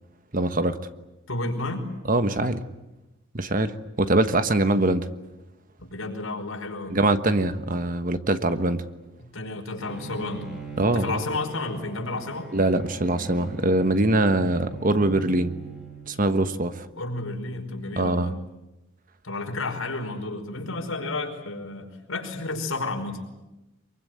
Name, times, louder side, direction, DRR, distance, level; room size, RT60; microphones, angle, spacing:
voice 1, 0.3-0.8 2.1-2.6 3.3-5.1 6.9-8.8 10.8-11.2 12.5-15.5 16.1-16.9 18.0-18.3, right 2 dB, 40° right, 10 dB, 1.3 m, -23 dB
voice 2, 1.3-1.8 5.8-7.0 9.2-10.5 10.9-12.5 16.9-18.3 19.2-23.2, left 2 dB, 85° left, 3 dB, 5.2 m, -31 dB
Bowed string instrument, 9.9-16.5, right 3 dB, ahead, 5.9 m, -41 dB
24.0 x 23.5 x 9.5 m, 1.0 s
head